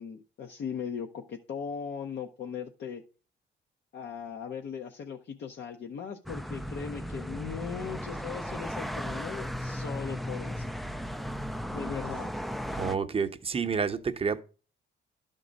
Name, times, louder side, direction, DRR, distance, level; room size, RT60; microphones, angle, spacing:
voice 1, 0.0-3.0 3.9-10.7 11.7-12.3, left 7 dB, 60° left, 0.8 m, -38 dB
sound 1, 6.3-13.0, equal, ahead, 0.3 m, -36 dB
voice 2, 12.7-14.4, right 5 dB, 30° right, 0.7 m, -29 dB
11.5 x 3.8 x 5.2 m
cardioid pair, 90°, 20 cm